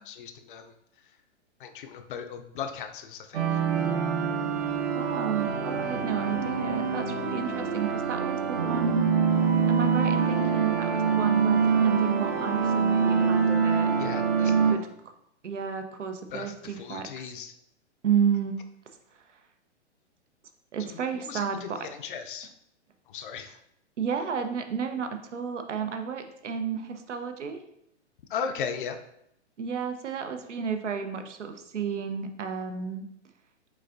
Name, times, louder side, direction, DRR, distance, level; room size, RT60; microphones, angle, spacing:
voice 1, 0.1-0.7 1.6-3.5 14.0-14.7 16.3-17.5 21.3-22.5 23.1-23.6 28.3-29.0, left 6 dB, 50° left, 8 dB, 0.5 m, -37 dB
sound 1, 3.3-14.7, right 6 dB, 55° right, 0.9 m, -25 dB
voice 2, 4.9-9.1 9.7-13.9 14.4-14.9 15.4-17.3 18.0-18.6 20.7-21.9 23.5-23.6 24.0-27.6 29.6-33.1, right 7 dB, 85° right, 7 dB, 0.7 m, -32 dB
5.3 x 3.6 x 2.5 m, 0.76 s
hypercardioid pair, 125°, 35 cm